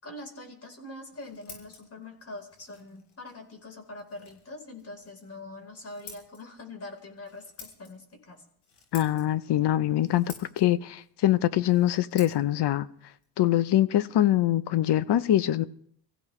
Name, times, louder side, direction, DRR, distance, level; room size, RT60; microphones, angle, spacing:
voice 1, 0.0-8.4, left 2 dB, 30° left, 4.4 m, -43 dB
Scissors, 0.9-14.5, left 6 dB, 85° left, 6.7 m, -53 dB
voice 2, 8.9-12.9 13.4-15.7, left 13 dB, 55° left, 0.9 m, -24 dB
26.0 x 15.5 x 3.3 m
cardioid pair, 105°, 48 cm